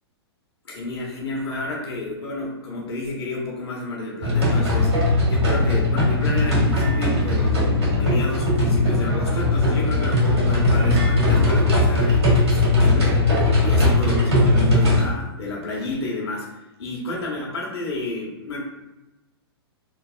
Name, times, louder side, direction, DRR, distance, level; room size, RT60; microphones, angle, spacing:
voice 1, 0.6-13.2 13.6-16.5 16.8-18.6, left 2 dB, 70° left, -2 dB, 1.0 m, -31 dB
sound 1, 4.2-15.1, left 2 dB, 85° right, 1.4 m, -19 dB
3.3 x 2.0 x 2.4 m, 1.0 s
hypercardioid pair, 115°, 14 cm